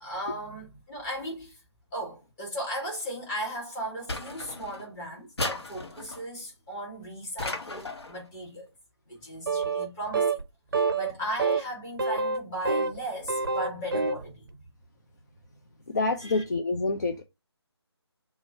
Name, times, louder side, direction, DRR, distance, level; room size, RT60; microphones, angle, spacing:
voice 1, 0.0-1.6 1.9-8.7 9.1-10.4 10.7-14.5 16.2-16.4, right 1 dB, 15° left, 1.3 m, -36 dB
sound 1, 4.1-4.9 5.4-6.2 7.4-8.2, left 2 dB, 70° left, 1.0 m, -35 dB
sound 2, 9.5-9.9 10.1-10.4 10.7-11.1 11.4-11.6 12.0-13.0 13.2-14.2, right 4 dB, 50° right, 0.5 m, -27 dB
voice 2, 15.9-17.2, left 3 dB, 40° left, 0.4 m, -27 dB
2.9 x 2.4 x 4.1 m
figure-of-eight pair, 155°, 14 cm